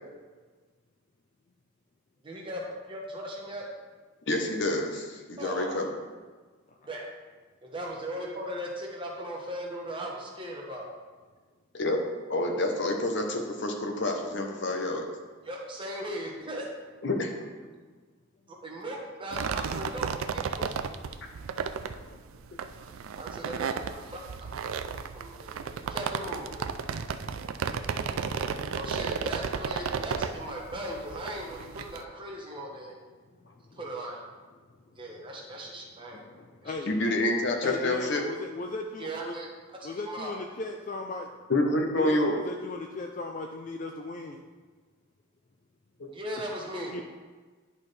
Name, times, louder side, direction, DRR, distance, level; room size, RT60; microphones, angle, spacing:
voice 1, 2.2-3.7 5.4-5.8 6.9-7.1 7.6-10.9 15.4-16.7 18.5-20.8 23.2-24.5 25.1-26.6 28.7-32.9 33.8-34.2 35.0-36.2 36.6-36.7 37.0-37.2 39.0-39.5 39.8-40.3 46.1-46.9, right 1 dB, 25° right, -2 dB, 1.1 m, -38 dB
voice 2, 4.3-5.9 11.7-12.0 12.3-15.1 17.0-17.3 36.9-38.2 41.5-42.4 46.0-46.1, left 1 dB, 55° left, 3 dB, 0.8 m, -28 dB
sound 1, 19.3-32.0, right 6 dB, 70° right, 0.4 m, -34 dB
voice 3, 21.9-22.6 25.1-25.2 25.5-25.6 33.4-33.8 35.1-35.2 36.1-36.9 37.6-39.4 39.8-41.3 42.0-44.4 46.6-47.0, left 3 dB, 35° left, 2 dB, 0.3 m, -38 dB
10.5 x 4.2 x 3.3 m, 1.4 s
head